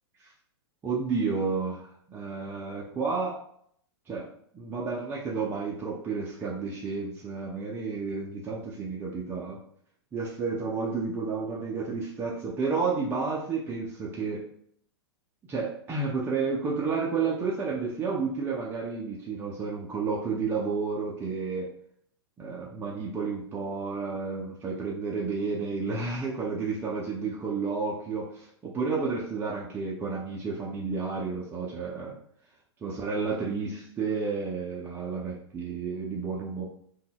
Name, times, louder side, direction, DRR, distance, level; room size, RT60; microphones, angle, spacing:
voice 1, 0.8-3.4 4.1-4.3 4.5-9.6 10.1-14.4 15.5-21.7 22.4-32.1 32.8-36.6, right 4 dB, 15° right, -4 dB, 0.5 m, -31 dB
3.8 x 2.2 x 2.2 m, 0.66 s
figure-of-eight pair, 110°, 14 cm